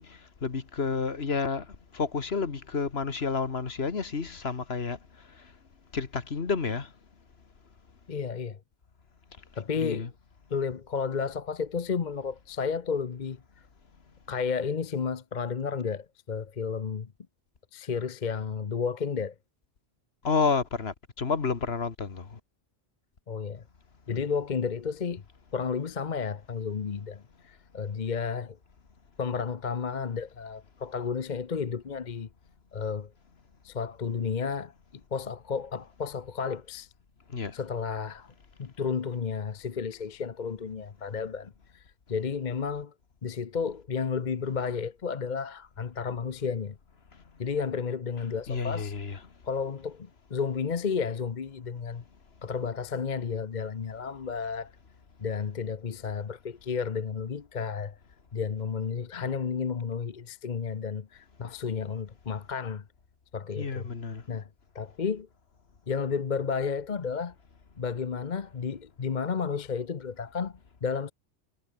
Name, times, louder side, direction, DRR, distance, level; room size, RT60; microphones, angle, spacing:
voice 1, 0.0-5.5 5.9-6.9 9.8-10.1 20.2-22.4 37.3-37.6 48.2-49.3 63.6-64.2, left 5 dB, 60° left, 1.8 m, -31 dB
voice 2, 8.1-8.6 9.6-10.1 10.5-13.4 14.3-17.1 17.7-19.3 23.3-23.6 24.1-25.2 25.5-28.6 29.2-32.3 32.7-33.1 33.6-34.7 35.1-36.9 37.5-38.3 38.6-41.8 42.1-42.9 43.2-46.8 47.4-48.9 49.4-52.0 52.4-54.7 55.2-58.0 58.3-62.8 63.3-63.9 64.3-64.5 64.7-65.3 65.9-67.3 67.8-71.1, left 6 dB, 45° left, 1.0 m, -32 dB
omnidirectional pair, 1.2 m